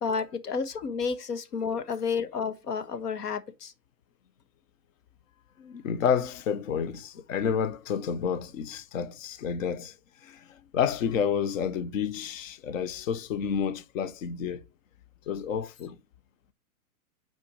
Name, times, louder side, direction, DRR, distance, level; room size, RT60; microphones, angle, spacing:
voice 1, 0.0-3.7, left 5 dB, 85° left, 1.2 m, -31 dB
voice 2, 5.6-14.6 15.3-16.0, left 7 dB, 60° left, 0.8 m, -30 dB
5.7 x 4.4 x 5.0 m
hypercardioid pair, 155°, 46 cm